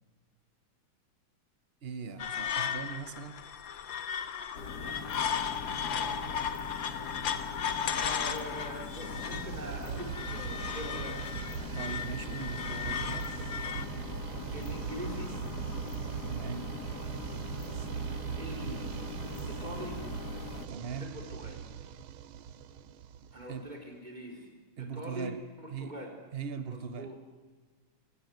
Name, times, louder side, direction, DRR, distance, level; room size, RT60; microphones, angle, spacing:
voice 1, 1.8-3.4 11.7-13.3 16.3-16.7 20.7-21.1 23.5-23.7 24.8-25.4 25.7-26.0 26.3-27.1, right 6 dB, 55° right, 11 dB, 0.6 m, -40 dB
sound 1, 2.2-13.9, left 8 dB, 70° left, 1.8 m, -36 dB
sound 2, 4.5-20.7, left 4 dB, 50° left, 2.1 m, -42 dB
voice 2, 5.9-6.4 7.8-11.2 14.5-15.6 18.3-19.0 19.5-20.0 21.0-21.6 23.3-24.5 24.8-25.3 25.6-26.1 26.7-27.2, equal, 20° right, 1 dB, 4.5 m, -43 dB
sound 3, 8.9-23.7, right 9 dB, 85° right, 1.8 m, -40 dB
25.0 x 18.5 x 7.9 m, 1.4 s
omnidirectional pair, 2.3 m